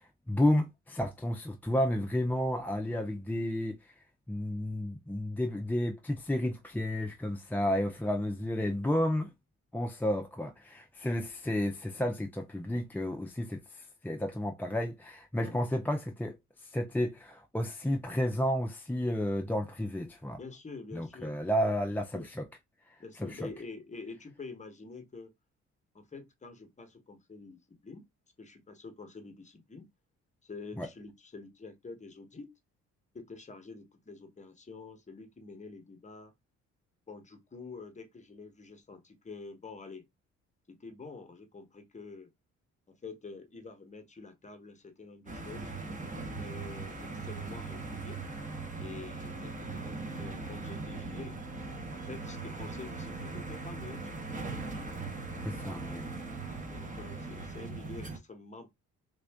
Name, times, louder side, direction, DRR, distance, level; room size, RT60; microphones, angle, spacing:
voice 1, 0.3-3.9 4.3-9.3 9.7-20.4 20.9-22.2 23.2-23.5 30.8-30.9 55.4-56.1, left 1 dB, 5° left, 0.4 m, -31 dB
voice 2, 15.4-15.7 20.4-21.4 22.1-22.3 23.0-25.3 25.9-28.0 28.4-29.9 30.4-32.5 33.1-36.3 37.1-40.0 40.7-42.3 42.9-45.7 46.4-48.2 48.8-51.4 51.9-54.1 55.2-56.1 56.4-58.7, left 4 dB, 25° left, 1.0 m, -47 dB
sound 1, 45.3-58.2, right 3 dB, 25° right, 1.0 m, -40 dB
3.4 x 2.5 x 3.4 m
cardioid pair, 90°, 30 cm